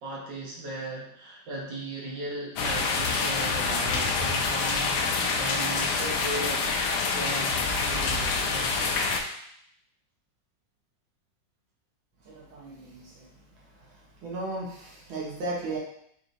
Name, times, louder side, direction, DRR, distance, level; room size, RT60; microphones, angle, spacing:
voice 1, 0.0-6.6 7.1-8.9, right 2 dB, 70° right, -3 dB, 1.6 m, -37 dB
sound 1, 2.6-9.2, left 4 dB, 70° left, 1.0 m, -27 dB
voice 2, 12.3-13.3 13.8-13.9 14.2-15.8, right 2 dB, 85° right, -4 dB, 1.8 m, -35 dB
4.7 x 2.8 x 2.6 m, 0.70 s
omnidirectional pair, 2.1 m